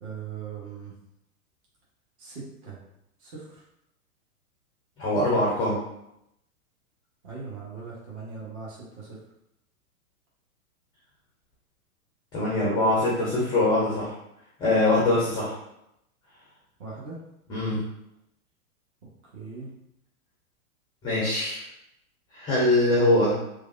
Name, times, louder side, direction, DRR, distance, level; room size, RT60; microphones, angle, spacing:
voice 1, 0.0-0.9 2.2-2.8 3.2-3.5 7.2-9.2 16.8-17.2 19.3-19.7, right 5 dB, 50° right, -6 dB, 1.2 m, -39 dB
voice 2, 5.0-5.8 12.3-14.1 14.6-15.5 17.5-17.8 21.0-21.6 22.3-23.3, left 1 dB, 10° left, -7 dB, 0.4 m, -23 dB
3.2 x 2.3 x 2.4 m, 0.81 s
hypercardioid pair, 115°, 44 cm